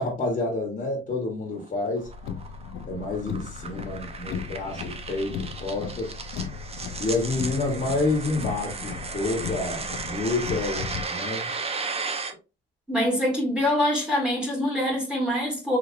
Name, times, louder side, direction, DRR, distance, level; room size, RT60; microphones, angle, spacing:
voice 1, 0.0-2.1 2.8-6.1 7.0-11.5, left 2 dB, 40° left, 1.3 m, -29 dB
sound 1, 1.6-12.3, right 4 dB, 30° right, 0.7 m, -35 dB
Car, 2.0-11.0, left 6 dB, 85° left, 0.4 m, -36 dB
voice 2, 12.9-15.8, left 1 dB, 5° right, 1.5 m, -24 dB
3.9 x 2.8 x 2.5 m
cardioid pair, 90°, 20 cm